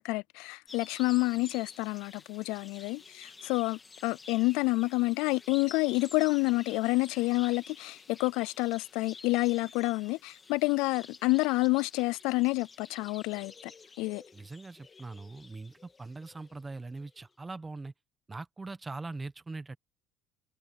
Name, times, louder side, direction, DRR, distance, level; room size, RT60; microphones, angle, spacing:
voice 1, 0.0-13.7 14.0-14.2, left 23 dB, 80° left, 0.3 m, -29 dB
sound 1, 0.7-17.2, left 4 dB, 20° left, 2.2 m, -51 dB
voice 2, 14.3-17.9 18.3-19.8, right 3 dB, 15° right, 1.1 m, -41 dB
cardioid pair, 150°, 0 cm